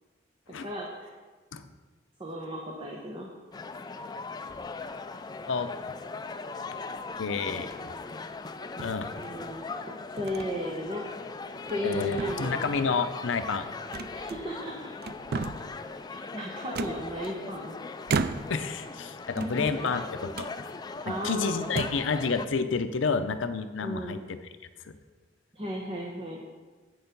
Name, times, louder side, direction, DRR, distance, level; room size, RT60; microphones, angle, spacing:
voice 1, 0.6-1.1 2.2-3.3 9.2-11.0 11.7-12.6 14.1-14.7 16.1-17.7 19.4-19.9 21.0-21.9 23.8-24.2 25.5-26.4, equal, 30° right, -2 dB, 1.0 m, -35 dB
sound 1, 3.5-22.5, left 4 dB, 20° left, 0.4 m, -39 dB
voice 2, 7.2-7.7 8.8-9.1 11.8-13.7 18.5-20.7 21.1-24.4 24.8-24.9, left 5 dB, 70° left, 9 dB, 0.6 m, -30 dB
sound 2, 7.6-8.0 8.8-9.5 10.3-10.5 10.9-11.0 11.5-11.9 12.2-12.9 13.9-14.7 15.0-15.8 16.7-17.6 18.1-18.7 19.3-20.0 20.3-20.6 21.2-21.3 21.6-22.1, right 4 dB, 55° right, 0.4 m, -34 dB
8.7 x 6.6 x 5.3 m, 1.3 s
head